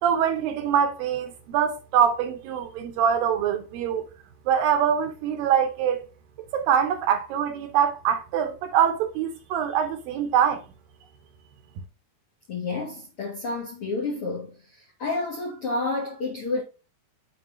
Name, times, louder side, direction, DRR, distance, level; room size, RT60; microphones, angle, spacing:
voice 1, 0.0-4.1 4.5-6.0 6.4-10.6, right 8 dB, 75° right, 2.3 m, -24 dB
voice 2, 12.5-16.6, left 3 dB, 75° left, 1.2 m, -30 dB
7.6 x 5.0 x 3.0 m
omnidirectional pair, 4.5 m